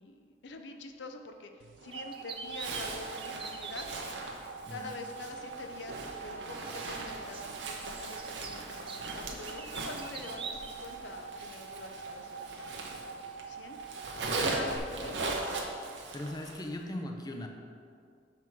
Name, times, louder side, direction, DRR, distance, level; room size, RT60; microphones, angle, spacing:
voice 1, 0.0-3.9 4.7-13.8 14.3-15.6, left 3 dB, 70° left, 5 dB, 0.5 m, -45 dB
sound 1, 1.6-14.8, right 5 dB, 90° right, 0.4 m, -45 dB
sound 2, 1.9-3.9 5.3-5.4 6.6-10.7, right 5 dB, 30° right, 0.5 m, -44 dB
Zipper (clothing), 2.5-13.4 13.7-16.7, right 3 dB, 75° right, 0.9 m, -39 dB
voice 2, 16.1-17.5, left 1 dB, 20° left, 3 dB, 0.5 m, -39 dB
6.0 x 5.8 x 4.6 m, 2.3 s
head